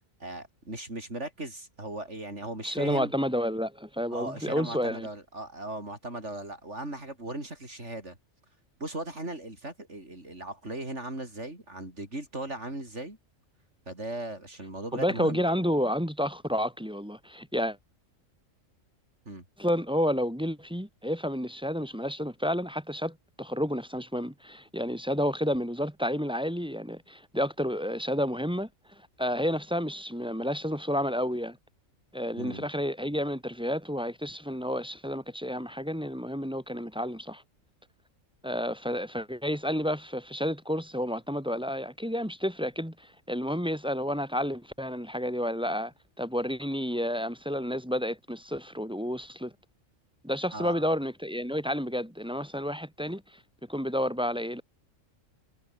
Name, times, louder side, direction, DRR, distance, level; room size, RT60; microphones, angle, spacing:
voice 1, 0.2-3.1 4.1-8.2 8.8-13.2 13.9-15.4 19.2-19.4 32.4-32.7 50.5-50.8, right 1 dB, 60° right, 6.7 m, -38 dB
voice 2, 2.6-5.1 14.9-17.8 19.6-31.6 32.1-37.4 38.4-49.5 50.2-53.4 53.7-54.6, equal, 5° right, 2.0 m, -30 dB
omnidirectional pair, 1.4 m